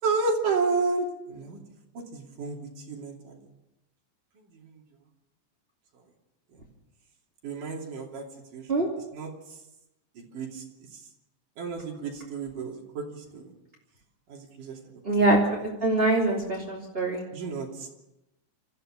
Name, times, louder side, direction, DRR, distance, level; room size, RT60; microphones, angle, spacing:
voice 1, 0.0-1.6 1.9-3.4 4.4-4.8 7.4-8.3 8.5-9.3 10.2-10.6 10.9-11.0 11.6-13.5 14.3-14.8 15.1-15.2 17.3-17.9, right 4 dB, 75° right, 0 dB, 4.4 m, -31 dB
voice 2, 15.0-17.2, right 2 dB, 20° right, -3 dB, 2.8 m, -24 dB
27.5 x 14.5 x 6.5 m, 0.93 s
omnidirectional pair, 3.7 m